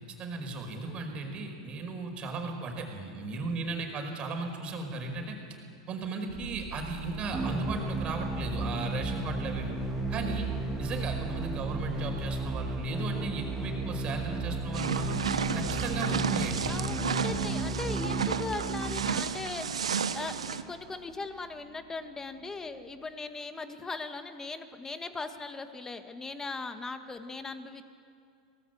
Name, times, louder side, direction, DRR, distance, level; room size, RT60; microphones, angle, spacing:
voice 1, 0.2-5.4 5.9-9.7 10.1-10.5 10.8-15.2 15.5-16.8, right 3 dB, 35° right, 4 dB, 4.8 m, -36 dB
sound 1, 6.3-23.1, right 2 dB, 55° right, 3.3 m, -43 dB
sound 2, 7.3-19.3, right 2 dB, 5° right, 2.5 m, -34 dB
sound 3, 14.7-20.6, right 6 dB, 85° right, 0.9 m, -32 dB
voice 2, 16.7-27.8, left 3 dB, 15° left, 8 dB, 1.7 m, -39 dB
23.5 x 18.5 x 7.9 m, 2.4 s
hypercardioid pair, 100°, 3 cm